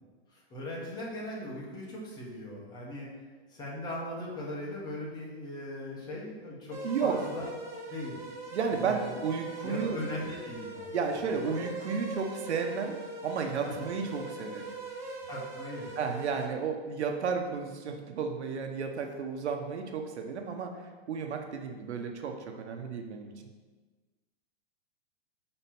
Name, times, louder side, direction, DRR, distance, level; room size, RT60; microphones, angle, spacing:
voice 1, 0.3-3.1 3.5-7.5 7.9-8.2 8.7-9.2 9.6-10.9 11.3-11.6 13.6-13.9 15.2-16.3, left 1 dB, 10° left, -4 dB, 1.2 m, -39 dB
sound 1, 6.7-16.5, right 2 dB, 10° right, 0.7 m, -41 dB
voice 2, 6.8-7.2 8.5-10.0 10.9-14.7 16.0-23.3, right 5 dB, 85° right, 4 dB, 1.1 m, -33 dB
5.7 x 4.4 x 5.9 m, 1.3 s
hypercardioid pair, 160°, 33 cm